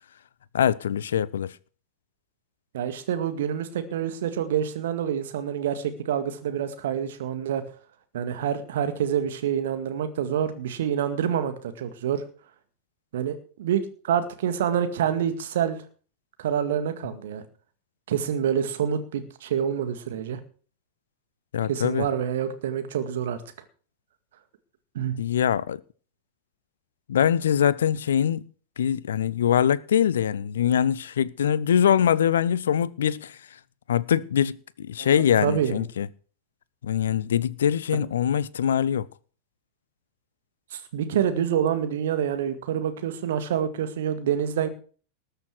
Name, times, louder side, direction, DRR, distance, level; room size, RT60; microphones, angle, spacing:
voice 1, 0.5-1.5 21.5-22.1 25.2-25.8 27.1-28.5 28.8-33.4 33.9-36.1 36.8-39.1, left 9 dB, 65° left, 0.6 m, -23 dB
voice 2, 2.7-7.6 8.1-12.2 13.1-15.8 16.4-17.4 18.1-20.4 21.7-23.4 24.9-25.2 35.0-35.1 35.4-35.8 37.9-38.0 40.7-44.7, right 9 dB, 60° right, 2.0 m, -27 dB
19.5 x 6.7 x 6.2 m
figure-of-eight pair, 90°, 0 cm